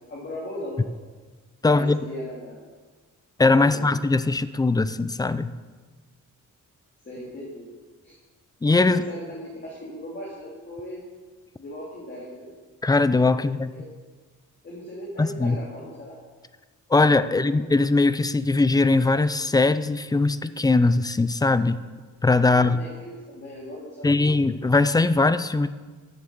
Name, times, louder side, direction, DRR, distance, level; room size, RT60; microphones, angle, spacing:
voice 1, 0.1-0.9 1.6-2.6 3.6-3.8 7.0-7.6 8.0-8.1 8.8-11.0 11.6-12.5 13.3-13.8 14.6-16.2 17.2-17.5 22.5-24.3, equal, 35° left, -6 dB, 2.6 m, -38 dB
voice 2, 1.6-2.0 3.4-5.5 8.6-9.0 12.8-13.7 15.2-15.6 16.9-21.8 22.2-22.8 24.0-25.7, left 3 dB, 15° left, 13 dB, 0.3 m, -20 dB
10.5 x 7.7 x 6.9 m, 1.4 s
wide cardioid pair, 160°, 32 cm